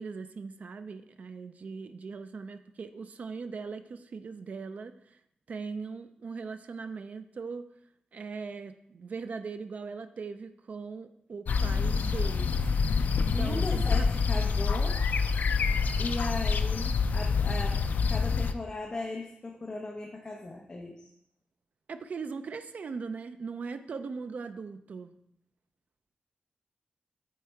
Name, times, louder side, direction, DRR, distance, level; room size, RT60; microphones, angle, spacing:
voice 1, 0.0-4.9 5.5-7.7 8.1-12.5 13.3-13.8 14.3-14.5 21.9-25.1, right 5 dB, 50° right, 10 dB, 0.4 m, -39 dB
sound 1, 11.5-18.5, left 5 dB, 65° left, 0.4 m, -27 dB
voice 2, 13.3-15.0 16.0-21.0, left 2 dB, 25° left, 0 dB, 0.7 m, -37 dB
8.4 x 4.2 x 4.6 m, 0.76 s
wide cardioid pair, 175°, 3 cm